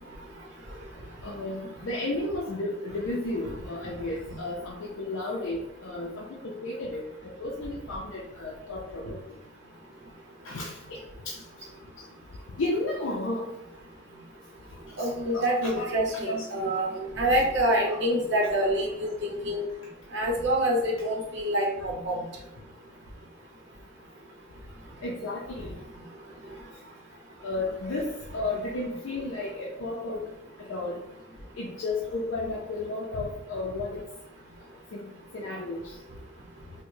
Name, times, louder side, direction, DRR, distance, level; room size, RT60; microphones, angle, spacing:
voice 1, 1.2-7.0 7.4-9.2 10.5-10.7 11.3-11.4 12.6-13.5 15.3-15.9 16.2-16.4 16.8-17.0 25.0-25.7 27.4-28.1 28.3-30.2 30.7-31.0 31.6-34.0 34.9-35.0 35.3-35.8, left 2 dB, 80° left, -3 dB, 0.5 m, -32 dB
voice 2, 15.0-19.6 20.1-22.2, right 1 dB, 60° right, -2 dB, 0.7 m, -26 dB
4.5 x 2.1 x 2.6 m, 0.83 s
head